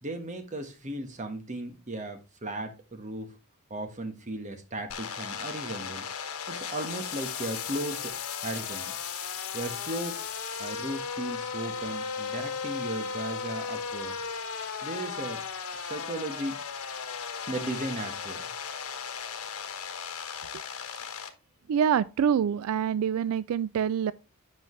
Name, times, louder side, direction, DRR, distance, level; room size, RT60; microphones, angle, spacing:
voice 1, 0.0-3.3 3.7-6.1 6.5-8.2 8.4-9.0 9.5-10.2 10.6-14.2 14.8-15.4 15.7-16.6 17.5-18.5, right 1 dB, 35° right, 1.2 m, -36 dB
sound 1, 4.9-21.3, left 6 dB, 90° left, 1.2 m, -36 dB
voice 2, 21.7-24.1, right 8 dB, 80° right, 0.3 m, -26 dB
8.2 x 5.6 x 3.1 m
head